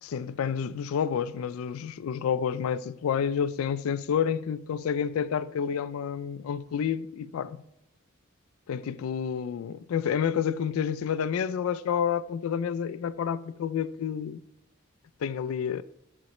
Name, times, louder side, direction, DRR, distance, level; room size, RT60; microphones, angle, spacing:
voice 1, 0.0-7.6 8.7-14.4 15.2-15.8, left 7 dB, 85° left, 0.3 m, -29 dB
10.5 x 4.0 x 3.0 m
head